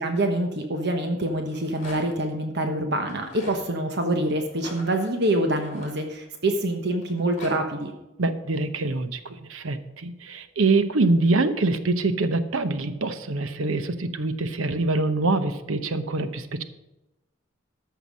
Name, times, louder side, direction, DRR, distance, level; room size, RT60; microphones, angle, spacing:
voice 1, 0.0-7.9, right 1 dB, 50° right, 4 dB, 1.1 m, -26 dB
Rattle, 1.4-2.3 3.0-3.6 4.5-6.5 7.0-7.5, left 2 dB, 35° left, 3.6 m, -43 dB
voice 2, 8.2-16.6, right 3 dB, 70° right, 11 dB, 0.8 m, -25 dB
14.0 x 5.9 x 6.1 m, 0.97 s
head